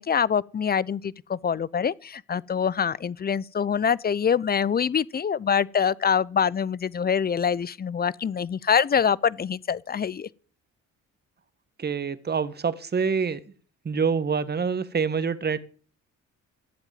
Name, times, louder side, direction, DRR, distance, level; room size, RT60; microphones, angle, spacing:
voice 1, 0.0-10.3, left 7 dB, 30° left, 0.6 m, -25 dB
voice 2, 11.8-13.4 13.8-15.6, right 5 dB, 35° right, 1.4 m, -26 dB
14.5 x 8.1 x 9.2 m
cardioid pair, 90°, 30 cm